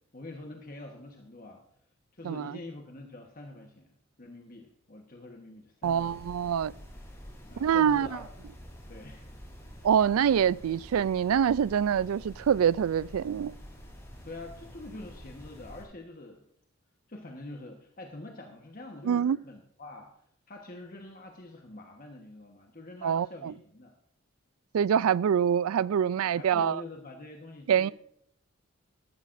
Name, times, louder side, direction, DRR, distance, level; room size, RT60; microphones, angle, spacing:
voice 1, 0.1-1.6 2.1-3.9 4.2-6.2 7.4-8.2 8.9-9.3 14.2-16.4 17.1-20.1 20.5-23.9 26.2-27.9, left 2 dB, 40° left, 1.2 m, -45 dB
voice 2, 2.2-2.6 5.8-6.7 7.6-8.1 9.8-13.5 19.0-19.4 23.0-23.5 24.7-26.8 27.7-27.9, right 8 dB, 85° right, 0.3 m, -25 dB
sound 1, 5.8-15.8, equal, 15° left, 3.4 m, -48 dB
14.5 x 12.5 x 2.6 m
head